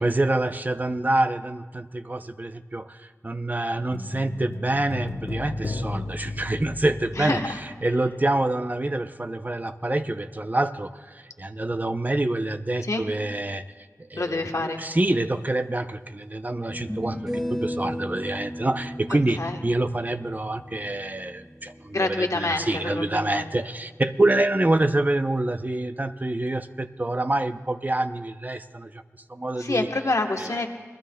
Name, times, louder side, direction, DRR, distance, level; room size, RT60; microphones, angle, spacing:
voice 1, 0.0-7.4 7.8-13.6 14.0-29.0 29.3-29.9, right 2 dB, 30° right, 9 dB, 0.6 m, -26 dB
sound 1, 3.9-8.4 8.6-8.7, left 2 dB, 50° left, 0.6 m, -34 dB
voice 2, 7.2-7.6 12.8-13.0 14.2-14.8 19.1-19.6 21.9-23.5 29.6-30.7, left 2 dB, 75° left, 3 dB, 1.1 m, -27 dB
sound 2, 15.6-15.7 16.7-21.9, equal, 5° left, 2.1 m, -35 dB
27.0 x 19.5 x 2.2 m, 1.5 s
wide cardioid pair, 55°, 6 cm